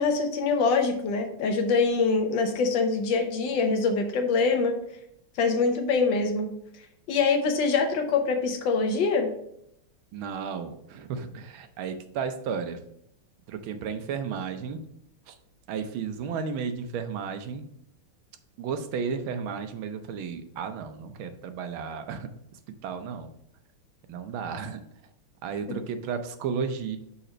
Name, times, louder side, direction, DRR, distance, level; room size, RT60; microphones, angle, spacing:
voice 1, 0.0-4.8 5.4-6.5 7.1-9.3 25.7-25.8, left 4 dB, 65° left, 5 dB, 1.5 m, -24 dB
voice 2, 10.1-12.8 13.5-14.8 15.3-15.4 15.7-17.7 18.6-22.3 22.7-23.3 24.1-24.8 25.4-27.0, right 6 dB, 75° right, 8 dB, 1.5 m, -33 dB
5.5 x 4.2 x 4.9 m, 0.75 s
omnidirectional pair, 2.4 m